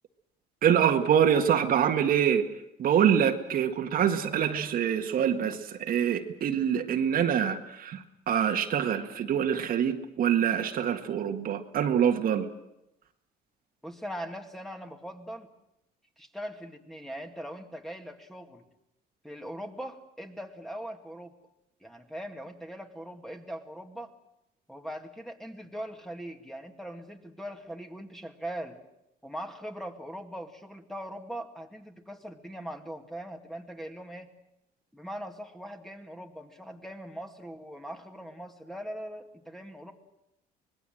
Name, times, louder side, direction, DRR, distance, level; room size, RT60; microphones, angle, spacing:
voice 1, 0.6-2.5 2.8-12.5, right 8 dB, 60° right, 5 dB, 1.8 m, -25 dB
voice 2, 13.8-15.5 16.2-18.7 19.2-21.3 21.8-24.1 24.7-28.8 29.2-34.3 34.9-39.9, equal, ahead, 5 dB, 2.2 m, -41 dB
25.0 x 20.0 x 7.8 m, 0.83 s
cardioid pair, 110°, 17 cm